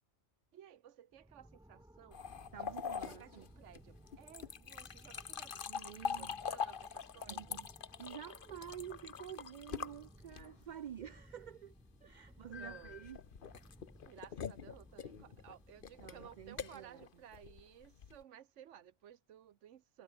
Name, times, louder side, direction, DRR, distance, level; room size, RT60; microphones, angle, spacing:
voice 1, 0.5-7.6 12.0-12.1 12.5-13.0 14.1-20.0, right 10 dB, 90° right, 1.2 m, -57 dB
sound 1, 1.1-17.1, equal, 5° right, 1.1 m, -61 dB
sound 2, 2.1-10.7 12.5-18.2, left 7 dB, 50° left, 1.0 m, -44 dB
voice 2, 2.5-3.5 5.7-6.4 7.3-7.7 8.0-11.7 12.0-13.2 16.0-17.0, right 9 dB, 55° right, 0.5 m, -49 dB
omnidirectional pair, 1.2 m